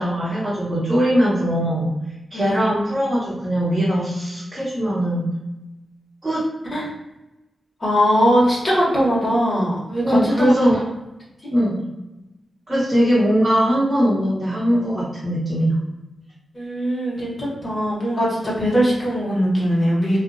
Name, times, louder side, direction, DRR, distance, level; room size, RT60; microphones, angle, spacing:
voice 1, 0.0-1.9 2.3-5.3 6.2-6.5 10.0-10.8 11.5-11.8 12.7-15.8, equal, 20° right, -10 dB, 1.1 m, -20 dB
voice 2, 7.8-10.5 16.5-20.2, equal, 30° left, -6 dB, 1.3 m, -20 dB
2.6 x 2.4 x 2.6 m, 0.98 s
cardioid pair, 85°, 0 cm